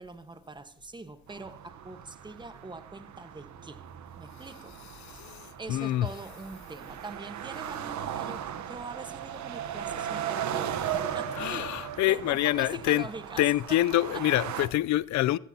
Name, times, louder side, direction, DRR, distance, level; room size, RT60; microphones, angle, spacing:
voice 1, 0.0-3.8 4.2-4.8 5.1-13.8 14.1-14.3, right 3 dB, 15° right, 1.2 m, -43 dB
sound 1, 1.3-14.7, right 9 dB, 70° right, 1.0 m, -37 dB
voice 2, 5.0-6.1 11.4-13.1 13.4-15.4, left 14 dB, 70° left, 0.5 m, -26 dB
16.5 x 14.0 x 2.8 m
cardioid pair, 90°, 30 cm